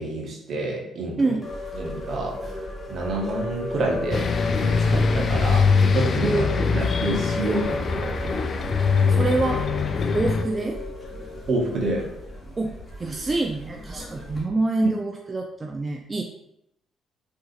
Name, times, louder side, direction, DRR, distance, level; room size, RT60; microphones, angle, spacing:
voice 1, 0.0-1.4 1.7-2.6 2.9-4.3 4.6-6.4 6.7-8.5 11.5-12.0 14.8-14.9, right 2 dB, 60° right, 0 dB, 0.8 m, -28 dB
sound 1, 1.4-14.4, left 2 dB, 20° left, 1.1 m, -35 dB
sound 2, 4.1-10.4, left 5 dB, 50° left, 0.3 m, -22 dB
voice 2, 6.2-6.8 9.1-9.6 10.1-10.8 12.6-12.7 13.0-16.2, right 2 dB, 30° right, 3 dB, 0.3 m, -26 dB
3.7 x 2.6 x 2.4 m, 0.78 s
supercardioid pair, 55°, 0 cm